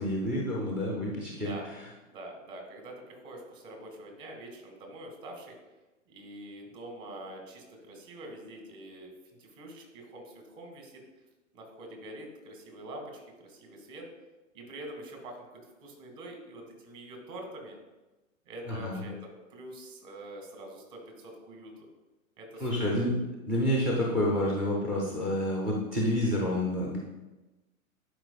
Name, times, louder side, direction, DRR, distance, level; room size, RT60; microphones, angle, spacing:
voice 1, 0.0-1.5 18.7-19.0 22.6-23.2 23.5-27.0, left 1 dB, 5° right, -3 dB, 0.3 m, -28 dB
voice 2, 1.3-1.7 2.0-5.5 6.1-11.0 11.5-14.1 14.5-17.8 18.5-19.1 19.5-21.7 22.4-22.7 26.3-26.7, right 1 dB, 45° right, 2 dB, 2.3 m, -45 dB
11.5 x 4.9 x 2.3 m, 1.1 s
figure-of-eight pair, 110°, 42 cm